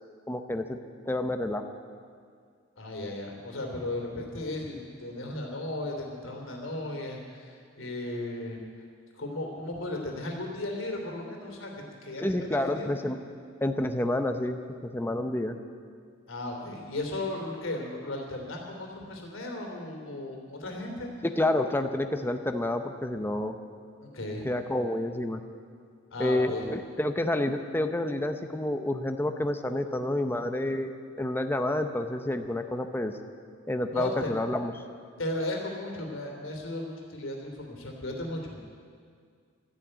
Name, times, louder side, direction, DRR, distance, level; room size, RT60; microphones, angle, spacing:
voice 1, 0.3-0.8 1.1-1.6 12.2-13.2 13.6-15.6 21.2-23.6 24.4-25.4 26.2-30.9 31.2-33.1 33.7-34.7, left 1 dB, 10° left, 6 dB, 0.7 m, -29 dB
voice 2, 2.8-8.6 9.1-11.7 12.0-13.0 16.3-21.1 24.0-24.5 26.1-26.7 33.9-34.3 35.2-38.6, left 1 dB, 85° left, 1 dB, 3.0 m, -35 dB
13.0 x 11.5 x 8.9 m, 2.1 s
head